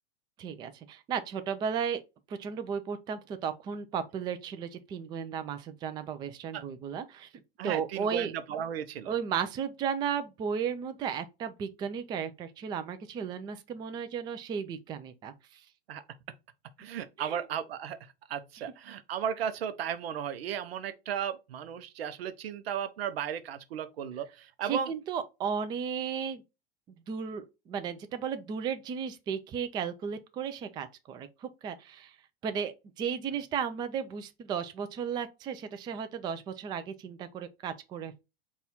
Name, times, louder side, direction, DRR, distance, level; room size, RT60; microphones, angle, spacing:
voice 1, 0.4-2.0 2.3-7.3 7.6-8.3 9.1-15.6 17.2-17.4 24.6-26.4 27.1-32.2 32.4-38.2, right 7 dB, 15° right, 0.3 m, -34 dB
voice 2, 7.6-9.1 15.9-16.0 16.8-24.9, right 8 dB, 75° right, 0.6 m, -35 dB
4.1 x 2.4 x 4.0 m
hypercardioid pair, 110°, 31 cm